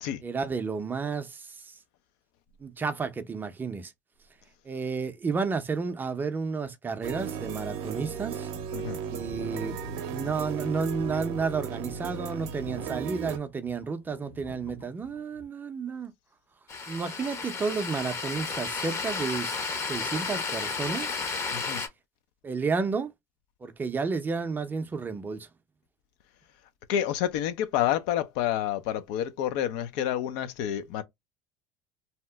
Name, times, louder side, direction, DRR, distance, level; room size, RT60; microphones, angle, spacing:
voice 1, 0.2-1.7 2.6-3.9 4.6-8.5 9.1-9.8 10.1-16.1 16.9-19.6 19.9-21.2 22.4-23.1 23.6-25.5, right 4 dB, 20° right, 0.5 m, -31 dB
sound 1, 7.0-13.4, right 7 dB, 65° right, 0.6 m, -35 dB
sound 2, 8.3-15.4, left 3 dB, 85° left, 0.9 m, -50 dB
sound 3, 16.7-21.9, left 4 dB, 30° left, 0.7 m, -32 dB
voice 2, 21.5-21.8 26.9-31.0, left 11 dB, 70° left, 0.5 m, -29 dB
2.8 x 2.0 x 3.3 m
supercardioid pair, 105°, 9 cm